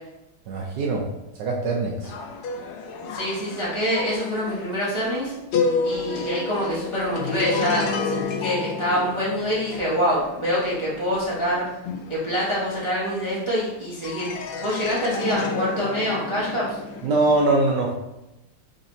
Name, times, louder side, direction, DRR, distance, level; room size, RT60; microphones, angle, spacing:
voice 1, 0.5-1.1 1.4-2.1 17.0-17.9, right 2 dB, 70° right, -1 dB, 1.0 m, -22 dB
sound 1, 2.0-13.6 14.0-17.4, left 4 dB, 80° left, 1.5 m, -30 dB
voice 2, 3.1-5.3 5.8-11.6 12.1-14.3 14.6-16.8, equal, 40° right, -7 dB, 0.4 m, -25 dB
3.9 x 3.3 x 4.0 m, 0.94 s
omnidirectional pair, 2.4 m